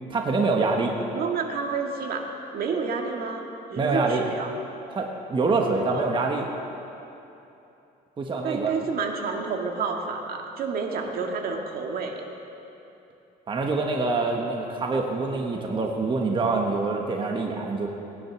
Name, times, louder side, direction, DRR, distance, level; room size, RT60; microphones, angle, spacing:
voice 1, 0.1-0.9 3.8-4.2 4.9-6.5 8.2-8.7 13.5-17.9, right 3 dB, 30° right, 1 dB, 1.4 m, -25 dB
voice 2, 1.1-4.5 5.9-6.1 8.4-12.3 14.4-14.5, right 5 dB, 60° right, 2 dB, 1.8 m, -30 dB
19.0 x 10.5 x 6.1 m, 2.9 s
cardioid pair, 110°, 17 cm